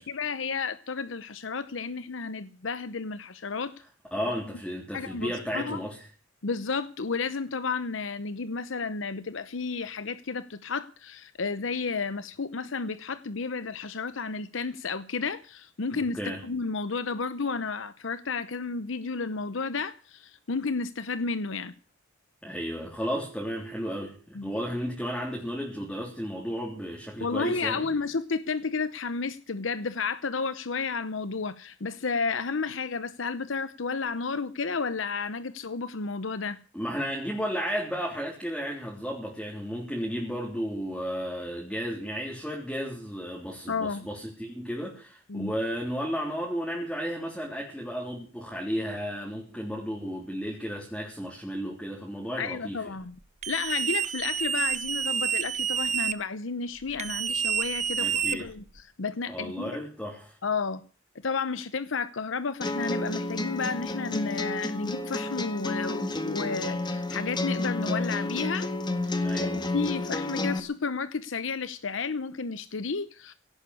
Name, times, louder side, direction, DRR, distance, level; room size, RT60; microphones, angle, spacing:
voice 1, 0.0-3.7 4.9-5.8 6.4-16.2 16.4-21.7 24.3-24.5 27.2-36.6 43.7-44.0 45.3-45.5 52.4-53.1 53.5-59.8 60.4-60.8 61.2-68.7 69.0-73.3, left 4 dB, 75° left, 14 dB, 0.8 m, -32 dB
voice 2, 4.1-6.1 16.0-16.4 22.4-27.9 36.7-52.9 58.0-58.5 59.3-60.4 69.2-69.9, equal, 5° left, -2 dB, 3.6 m, -33 dB
sound 1, 53.4-56.1 57.0-58.8, right 8 dB, 35° right, 1.2 m, -28 dB
sound 2, 62.6-70.6, left 2 dB, 25° left, 1.8 m, -30 dB
17.5 x 9.6 x 8.4 m, 0.39 s
head